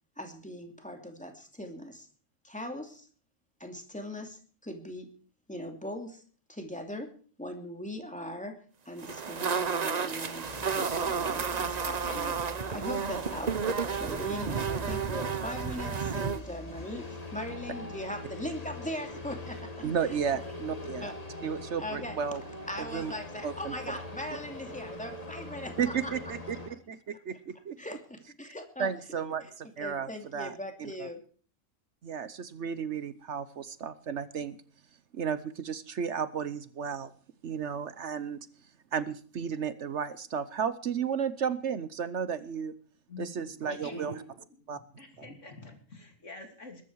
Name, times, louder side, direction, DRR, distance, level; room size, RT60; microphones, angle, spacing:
voice 1, 0.2-2.1 2.4-3.1 3.6-5.1 5.5-6.2 6.5-7.1 7.4-10.5 10.7-12.4 12.7-13.5 13.9-20.6 21.0-21.1 21.8-22.2 22.7-26.1 27.8-28.9 29.8-31.2, left 1 dB, 5° left, 4 dB, 2.7 m, -40 dB
sound 1, 9.0-16.4, right 6 dB, 35° right, 0.8 m, -31 dB
sound 2, 10.4-26.7, left 2 dB, 30° left, 2.1 m, -43 dB
voice 2, 19.8-21.1 21.4-22.4 22.8-23.1 23.4-23.7 25.8-27.8 28.8-31.1 32.0-34.6 35.1-37.1 37.4-38.5 38.9-42.7 43.2-44.1 44.7-44.8, right 7 dB, 65° right, 14 dB, 1.2 m, -33 dB
voice 3, 43.1-44.2 44.6-44.7 44.9-46.8, left 2 dB, 70° left, 4 dB, 3.4 m, -45 dB
21.0 x 12.5 x 4.7 m, 0.42 s
omnidirectional pair, 1.3 m